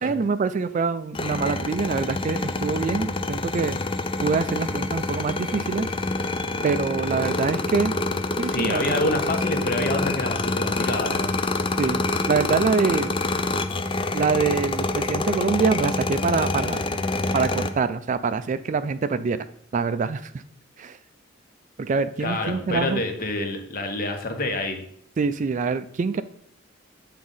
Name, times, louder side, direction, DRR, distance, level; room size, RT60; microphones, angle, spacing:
voice 1, 0.0-3.8 4.2-5.9 6.6-7.9 8.4-8.9 11.8-13.1 14.1-16.8 17.3-19.5 19.7-20.3 20.8-21.0 21.8-23.0 25.2-26.2, right 4 dB, 40° right, 13 dB, 0.3 m, -25 dB
sound 1, 1.1-17.7, left 2 dB, 25° left, 0.4 m, -26 dB
voice 2, 8.4-11.4 22.2-24.8, left 2 dB, 45° left, 4 dB, 1.2 m, -27 dB
8.0 x 3.7 x 5.5 m, 0.63 s
head